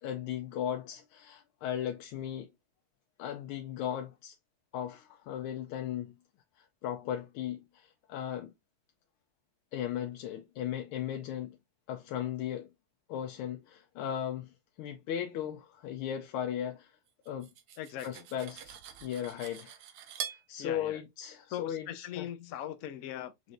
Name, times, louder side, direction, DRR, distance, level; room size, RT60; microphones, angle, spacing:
voice 1, 0.0-2.5 3.2-4.4 4.7-6.2 6.6-8.5 9.7-11.6 11.9-12.7 13.1-17.0 17.3-17.5 18.0-19.8 20.3-22.3, left 10 dB, 85° left, 1.5 m, -37 dB
Cutlery silverware, 17.2-20.4, right 8 dB, 90° right, 1.7 m, -44 dB
voice 2, 17.8-18.3 20.6-21.0 21.5-23.5, left 11 dB, 70° left, 0.8 m, -40 dB
5.7 x 3.2 x 2.5 m
omnidirectional pair, 2.3 m